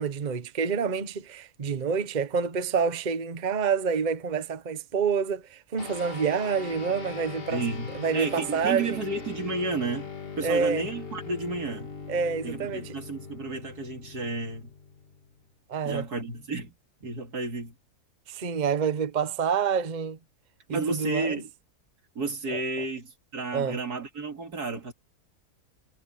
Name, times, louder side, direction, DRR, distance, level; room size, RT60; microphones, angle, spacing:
voice 1, 0.0-7.6 7.9-9.0 10.4-10.9 12.1-13.0 15.7-16.0 18.3-20.2 20.7-21.4 22.5-22.6 23.5-23.8, right 6 dB, 35° right, 1.0 m, -28 dB
sound 1, 5.8-15.5, left 5 dB, 40° left, 1.9 m, -41 dB
voice 2, 7.5-10.1 10.4-11.9 12.4-14.7 15.8-16.7 17.0-17.7 20.7-21.5 22.1-24.9, right 3 dB, 80° right, 3.1 m, -32 dB
omnidirectional pair, 1.6 m